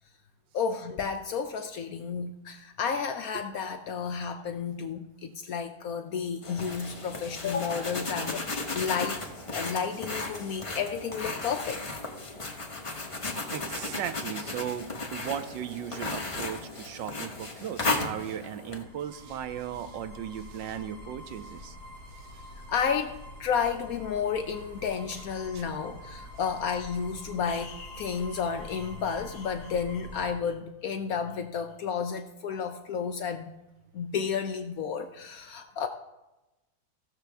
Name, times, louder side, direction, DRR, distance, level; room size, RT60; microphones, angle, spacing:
voice 1, 0.5-9.2 9.5-11.8 22.7-33.5 33.9-35.9, left 6 dB, 70° left, 6 dB, 0.9 m, -32 dB
sound 1, 6.4-18.8, left 3 dB, 25° left, 0.8 m, -35 dB
voice 2, 13.5-21.8 25.5-25.6, right 9 dB, 85° right, 11 dB, 1.3 m, -37 dB
sound 2, 18.6-30.3, left 1 dB, 55° right, 3.1 m, -46 dB
15.5 x 6.8 x 3.4 m, 1.0 s
omnidirectional pair, 2.0 m